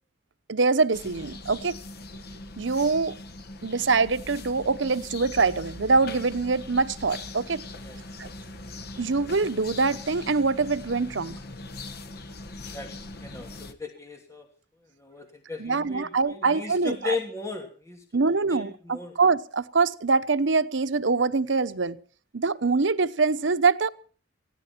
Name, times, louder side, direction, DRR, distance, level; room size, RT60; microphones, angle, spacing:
voice 1, 0.5-1.8 2.6-3.1 3.6-7.6 8.2-8.3 9.0-11.4 15.6-17.2 18.1-22.0 22.3-23.9, right 4 dB, 85° right, 0.9 m, -24 dB
sound 1, 0.9-13.7, left 2 dB, 55° left, 1.4 m, -41 dB
voice 2, 13.2-14.5 15.0-18.0 18.5-19.1, left 4 dB, 15° left, 2.7 m, -36 dB
19.5 x 15.5 x 4.4 m
head